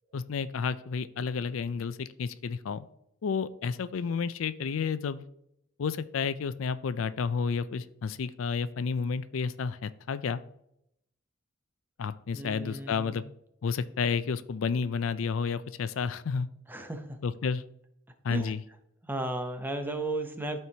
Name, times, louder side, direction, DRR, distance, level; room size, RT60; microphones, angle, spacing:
voice 1, 0.1-2.9 3.2-5.2 5.8-10.4 12.0-13.2 13.6-16.5 17.2-17.6 18.2-18.6, left 5 dB, 85° left, 14 dB, 0.4 m, -31 dB
voice 2, 12.3-13.2 16.7-17.2 18.3-18.5 19.0-20.6, right 1 dB, 10° right, 6 dB, 0.7 m, -34 dB
13.0 x 4.5 x 2.8 m, 0.77 s
head